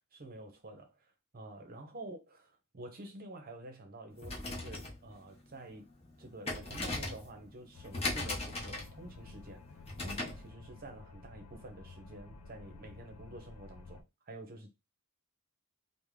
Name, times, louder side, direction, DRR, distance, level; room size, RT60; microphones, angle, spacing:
voice 1, 0.1-2.5 2.7-5.9 6.2-14.7, right 1 dB, 40° right, 0.7 m, -49 dB
sound 1, 4.1-10.5, left 2 dB, 25° left, 0.8 m, -40 dB
sound 2, 7.7-14.0, left 3 dB, 80° left, 0.5 m, -52 dB
3.5 x 2.1 x 3.2 m
head